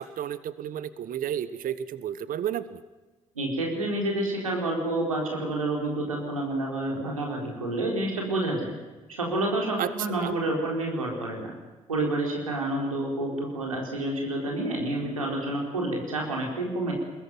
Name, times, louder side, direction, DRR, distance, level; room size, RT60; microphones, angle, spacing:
voice 1, 0.0-2.8 9.8-9.9 10.2-10.4, right 10 dB, 55° right, 15 dB, 1.3 m, -32 dB
voice 2, 3.3-8.7 9.1-11.5 11.9-16.9, right 2 dB, 90° right, -1 dB, 4.3 m, -29 dB
21.5 x 21.5 x 9.4 m, 1.2 s
figure-of-eight pair, 45°, 17 cm